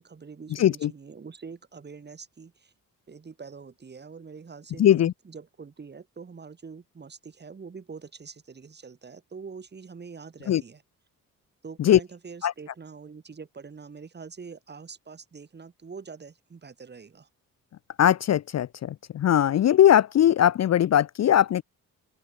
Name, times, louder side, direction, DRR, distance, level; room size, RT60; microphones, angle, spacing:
voice 1, 0.0-2.7 3.1-10.8 11.6-17.3, right 5 dB, 30° right, 4.4 m, -44 dB
voice 2, 0.5-0.9 4.8-5.1 10.5-10.6 11.8-12.0 12.4-12.5 18.0-21.6, left 11 dB, 50° left, 0.6 m, -20 dB
open air
wide cardioid pair, 165°, 34 cm